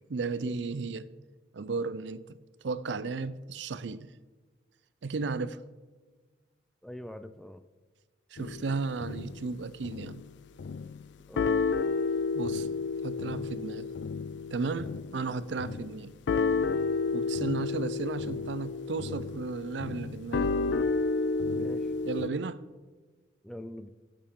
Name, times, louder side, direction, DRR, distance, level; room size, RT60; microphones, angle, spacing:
voice 1, 0.1-1.1 1.5-2.4 2.6-4.1 5.0-5.6 8.3-10.2 12.3-12.7 13.0-13.9 14.5-16.2 17.1-20.6 22.1-22.6, right 4 dB, 80° right, 0.5 m, -34 dB
voice 2, 6.8-7.6 11.3-11.5 21.5-21.9 23.4-23.9, left 1 dB, ahead, 0.4 m, -43 dB
sound 1, 8.4-9.5 9.8-10.2 10.6-11.0 11.4-22.3, left 4 dB, 75° left, 0.4 m, -31 dB
15.5 x 6.8 x 3.7 m
head